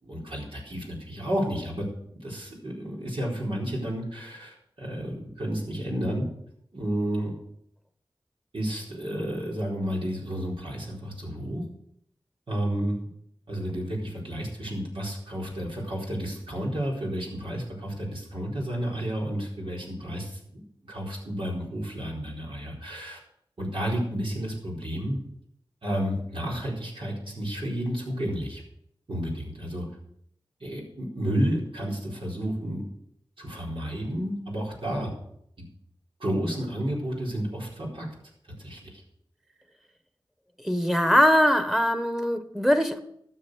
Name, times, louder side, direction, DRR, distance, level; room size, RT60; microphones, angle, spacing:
voice 1, 0.0-1.9 2.2-6.3 6.7-7.4 8.5-11.6 12.5-13.0 13.5-23.2 23.6-25.2 25.8-28.6 29.1-29.9 30.6-32.8 33.4-35.1 35.6-35.7 36.2-38.1 38.6-39.0, equal, 75° right, -4 dB, 4.4 m, -31 dB
voice 2, 40.6-43.0, equal, 5° right, 8 dB, 1.4 m, -21 dB
13.0 x 6.8 x 6.3 m, 0.73 s
wide cardioid pair, 45°, 9 cm